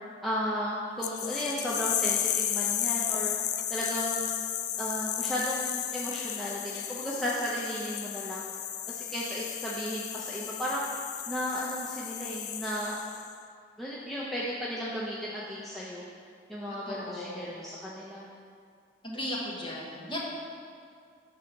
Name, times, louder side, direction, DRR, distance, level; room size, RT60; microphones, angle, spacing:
voice 1, 0.2-3.4 3.7-4.3 4.8-8.4 8.9-10.9 11.3-13.0 13.8-16.0 16.5-18.2, equal, ahead, -7 dB, 0.5 m, -34 dB
sound 1, 1.0-13.3, left 11 dB, 65° left, 0.3 m, -33 dB
voice 2, 16.8-17.7 19.0-20.2, left 1 dB, 30° left, -5 dB, 1.2 m, -36 dB
6.4 x 3.7 x 6.0 m, 2.3 s
head